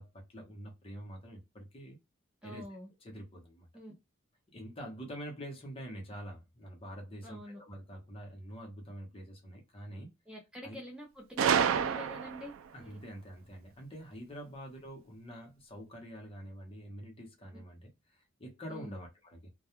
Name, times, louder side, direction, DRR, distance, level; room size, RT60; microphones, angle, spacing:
voice 1, 0.0-2.0 2.4-2.6 3.0-3.7 4.5-10.1 10.6-10.8 12.7-19.5, equal, 30° left, 0.8 m, -46 dB
voice 2, 2.4-2.9 3.7-3.9 7.2-7.6 10.3-12.5 12.8-12.9 18.7-19.0, equal, 5° right, 0.5 m, -46 dB
Gunshot gunfire, 11.4-12.6, right 7 dB, 80° right, 0.3 m, -28 dB
2.3 x 2.2 x 2.9 m
head